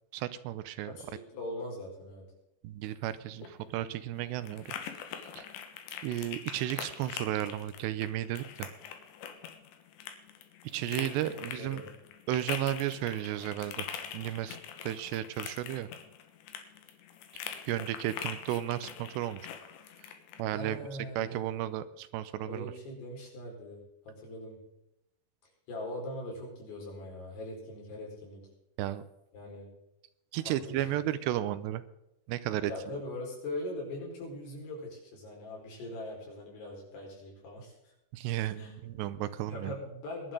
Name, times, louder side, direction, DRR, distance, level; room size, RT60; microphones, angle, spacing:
voice 1, 0.1-1.0 2.6-4.8 5.4-5.5 6.0-8.7 10.6-11.8 12.3-13.9 14.1-15.9 17.3-19.5 20.0-20.1 20.4-20.8 21.2-22.7 28.8-29.0 30.3-31.8 32.3-33.0 38.1-39.7, right 13 dB, 85° right, 14 dB, 2.8 m, -34 dB
voice 2, 0.9-2.2 10.9-11.1 11.3-11.8 20.5-21.6 22.4-24.6 25.7-28.4 29.3-29.7 30.4-30.9 32.6-37.7 38.6-38.7 39.5-40.3, left 1 dB, 70° left, -1 dB, 6.6 m, -41 dB
sound 1, 3.2-20.4, left 8 dB, 85° left, 3.6 m, -43 dB
21.5 x 11.0 x 3.8 m, 0.88 s
omnidirectional pair, 5.0 m